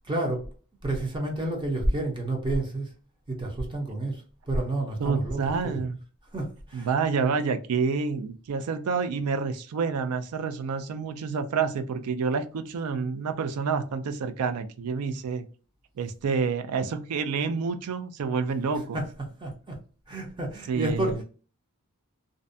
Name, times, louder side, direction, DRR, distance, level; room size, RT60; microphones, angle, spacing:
voice 1, 0.1-0.5 0.8-2.9 3.3-5.8 6.3-7.0 18.7-19.8 20.1-21.2, right 1 dB, 20° right, 0.6 m, -30 dB
voice 2, 5.0-6.0 6.7-15.5 16.0-19.0 20.7-21.2, right 5 dB, 80° right, 0.4 m, -28 dB
2.5 x 2.1 x 2.5 m
head